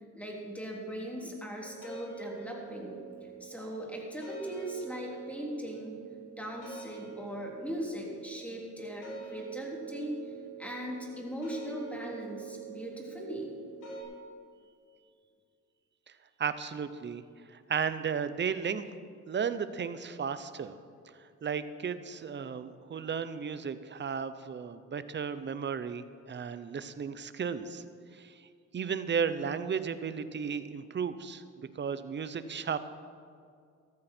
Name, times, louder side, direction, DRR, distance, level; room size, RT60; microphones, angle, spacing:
voice 1, 0.1-3.0 3.4-6.0 6.4-10.2 10.6-13.5, equal, 5° left, -1 dB, 3.2 m, -39 dB
sound 1, 1.6-14.0, right 6 dB, 80° left, 4.1 m, -45 dB
voice 2, 16.4-17.2 17.5-18.9 19.3-20.7 21.2-27.8 28.1-28.4 28.7-32.8, right 6 dB, 35° right, 12 dB, 0.8 m, -34 dB
14.0 x 13.5 x 4.5 m, 2.3 s
cardioid pair, 90°, 30 cm